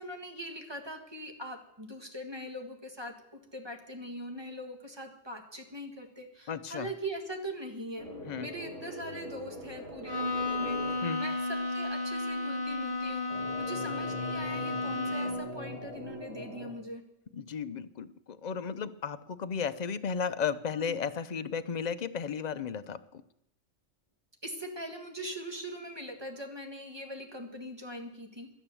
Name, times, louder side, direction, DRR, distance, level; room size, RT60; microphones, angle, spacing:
voice 1, 0.0-8.1 8.4-13.3 13.6-17.0 20.7-21.0 24.4-28.5, equal, 20° right, 4 dB, 1.6 m, -41 dB
voice 2, 6.5-6.9 8.3-8.5 11.0-11.2 17.3-23.2, left 6 dB, 45° left, 12 dB, 0.6 m, -34 dB
sound 1, 8.0-10.9 13.3-16.7, equal, 85° right, 6.0 m, -42 dB
Bowed string instrument, 10.0-15.6, left 2 dB, 60° right, 2.1 m, -33 dB
12.5 x 9.9 x 7.0 m, 0.83 s
omnidirectional pair, 1.2 m